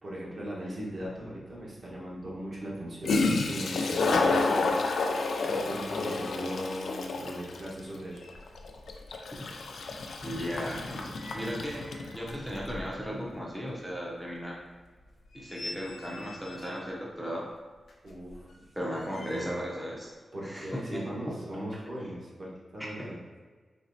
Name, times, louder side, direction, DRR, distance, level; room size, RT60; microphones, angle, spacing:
voice 1, 0.0-8.2 18.0-18.7 19.1-19.5 20.3-23.2, right 1 dB, 50° right, -6 dB, 1.1 m, -39 dB
Toilet flush, 1.0-1.1 2.8-2.9 3.0-12.4, left 3 dB, 90° left, 0.3 m, -30 dB
sound 1, 8.1-9.1 9.4-13.3 13.7-13.8 14.3-14.4 15.0-17.0 17.8-19.8 20.1-20.2, left 1 dB, 70° left, 0.8 m, -47 dB
voice 2, 10.2-11.8 12.1-14.6 15.3-17.5 18.8-20.1 20.4-21.0, equal, ahead, -4 dB, 0.5 m, -36 dB
4.2 x 3.0 x 2.6 m, 1.4 s
wide cardioid pair, 140°, 0 cm